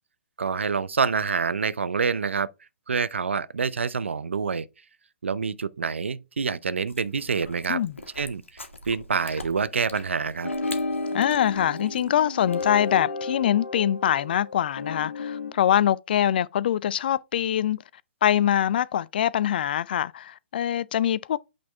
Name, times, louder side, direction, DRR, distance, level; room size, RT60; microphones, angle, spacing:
voice 1, 0.4-2.5 2.9-4.7 5.2-7.8 8.2-8.4 8.9-10.5, right 5 dB, 75° right, 0.5 m, -26 dB
Chewing mastication, 6.9-13.0, left 1 dB, 90° left, 1.5 m, -45 dB
sound 1, 10.4-15.5, left 3 dB, 75° left, 1.5 m, -32 dB
voice 2, 11.1-17.8 18.2-21.4, left 10 dB, 50° left, 0.4 m, -24 dB
8.4 x 4.3 x 3.4 m
figure-of-eight pair, 130°, 7 cm